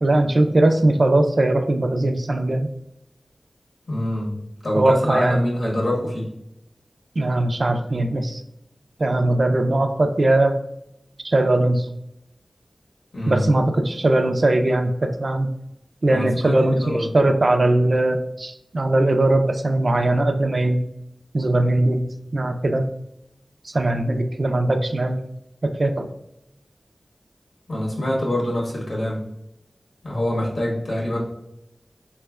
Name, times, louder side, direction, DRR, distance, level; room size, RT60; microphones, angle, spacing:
voice 1, 0.0-2.7 4.7-5.4 7.2-8.4 9.0-10.6 11.2-11.9 13.3-15.5 16.0-20.8 21.3-22.0 22.3-22.9 23.6-25.2 25.6-26.1, right 2 dB, 55° right, 6 dB, 0.3 m, -20 dB
voice 2, 3.9-4.4 4.6-6.3 13.1-13.4 16.1-17.1 27.7-29.3 30.0-31.2, left 1 dB, 65° left, -4 dB, 1.3 m, -25 dB
4.2 x 3.2 x 2.3 m, 0.83 s
wide cardioid pair, 75°, 0 cm